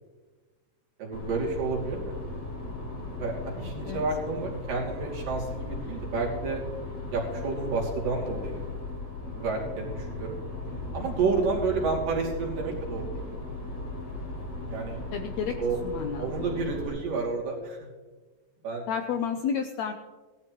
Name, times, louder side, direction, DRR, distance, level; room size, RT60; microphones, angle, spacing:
voice 1, 1.0-2.2 3.2-6.6 7.1-8.6 9.2-10.4 10.9-13.3 14.7-15.0 15.6-15.8 16.2-17.8 18.6-18.8, right 4 dB, 70° right, -2 dB, 4.4 m, -30 dB
sound 1, 1.1-16.9, left 2 dB, 65° left, 6.2 m, -37 dB
voice 2, 3.5-4.0 15.1-15.6 15.8-16.3 18.9-19.9, left 7 dB, 90° left, 6 dB, 1.5 m, -31 dB
18.0 x 12.5 x 3.1 m, 1.3 s
omnidirectional pair, 4.1 m